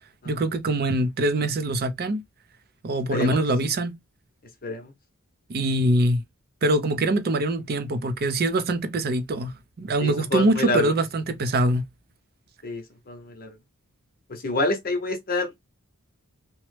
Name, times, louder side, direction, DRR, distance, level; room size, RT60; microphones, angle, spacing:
voice 1, 0.2-2.2 2.8-4.0 5.5-6.2 6.6-11.8, right 1 dB, 45° right, 0.5 m, -24 dB
voice 2, 3.1-3.4 4.6-4.9 10.0-10.9 12.6-13.6 14.3-15.6, left 2 dB, 40° left, 0.8 m, -28 dB
2.9 x 2.1 x 3.1 m
head